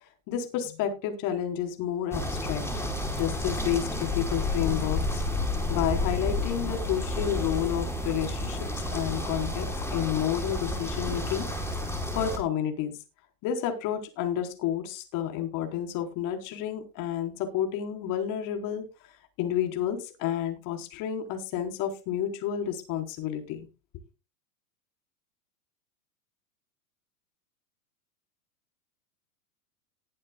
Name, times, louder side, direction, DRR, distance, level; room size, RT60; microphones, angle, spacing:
voice 1, 0.3-2.6 3.2-5.2 5.7-11.5 12.1-12.9 13.4-18.9 19.4-23.7, left 10 dB, 45° left, 5 dB, 4.1 m, -30 dB
sound 1, 2.1-12.4, left 1 dB, 5° left, 4.5 m, -30 dB
20.5 x 8.6 x 2.3 m, 0.30 s
hypercardioid pair, 105°, 45 cm